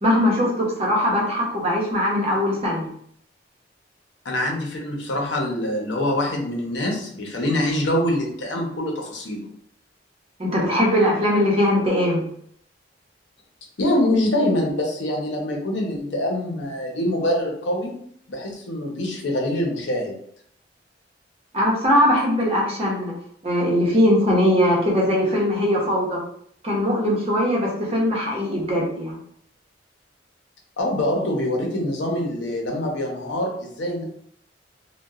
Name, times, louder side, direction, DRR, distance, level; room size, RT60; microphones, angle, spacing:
voice 1, 0.0-2.9 10.4-12.3 21.5-23.1 23.4-26.2 26.6-29.2, left 1 dB, 35° right, -3 dB, 0.8 m, -20 dB
voice 2, 4.2-9.5 13.8-17.9 18.3-20.2 30.8-34.0, left 1 dB, 85° left, 0 dB, 0.7 m, -24 dB
2.8 x 2.2 x 2.4 m, 0.65 s
head